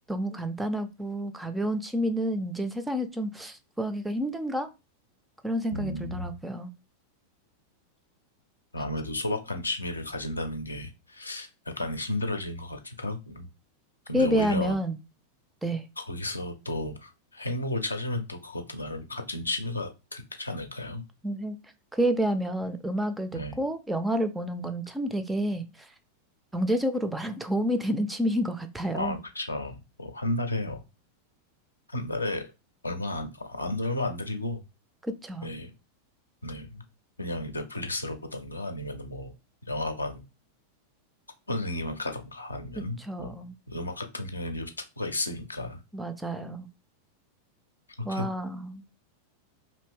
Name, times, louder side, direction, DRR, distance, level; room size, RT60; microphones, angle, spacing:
voice 1, 0.1-4.7 5.4-6.7 14.1-15.0 15.6-15.8 21.2-21.6 21.9-25.9 26.5-29.2 35.0-35.5 43.0-43.5 45.9-46.7 48.0-48.8, equal, 5° right, 0.4 m, -29 dB
voice 2, 5.7-6.3 8.7-13.5 14.1-14.8 16.0-21.0 23.3-23.6 28.9-30.8 31.9-32.5 32.8-34.6 35.4-35.7 36.4-36.8 37.2-39.3 39.7-40.2 41.5-43.3 43.7-45.8 48.1-48.3, left 1 dB, 80° left, 0.5 m, -33 dB
2.7 x 2.6 x 3.5 m
figure-of-eight pair, 90°, 0 cm